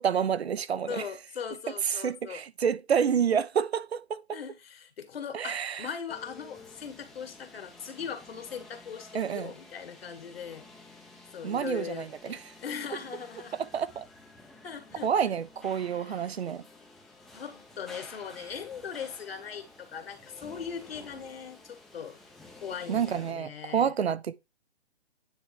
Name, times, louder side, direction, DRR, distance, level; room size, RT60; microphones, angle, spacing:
voice 1, 0.0-1.0 1.9-4.4 5.3-5.9 9.1-9.5 11.4-12.4 13.6-14.1 15.0-16.6 22.9-24.3, right 7 dB, 75° right, 0.9 m, -28 dB
voice 2, 0.9-2.4 4.3-10.7 11.3-13.6 14.6-16.4 17.3-22.2 22.5-23.9, left 7 dB, 65° left, 2.1 m, -40 dB
sound 1, 6.1-23.3, left 2 dB, ahead, 0.6 m, -52 dB
9.4 x 3.4 x 4.9 m
hypercardioid pair, 155°, 32 cm